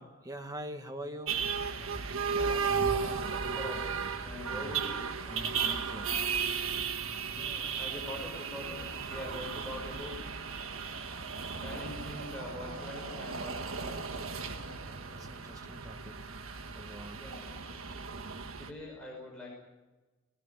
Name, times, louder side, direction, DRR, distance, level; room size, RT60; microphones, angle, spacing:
voice 1, 0.0-1.4 4.4-4.8 5.3-6.3 14.9-16.3 16.7-17.2, equal, 20° right, 5 dB, 2.0 m, -44 dB
sound 1, 1.3-18.7, right 6 dB, 80° right, 1.7 m, -35 dB
voice 2, 2.3-5.1 7.3-10.2 11.5-14.0 17.1-17.6 18.6-19.5, left 1 dB, 5° left, -4 dB, 5.6 m, -44 dB
19.0 x 18.5 x 9.5 m, 1.1 s
head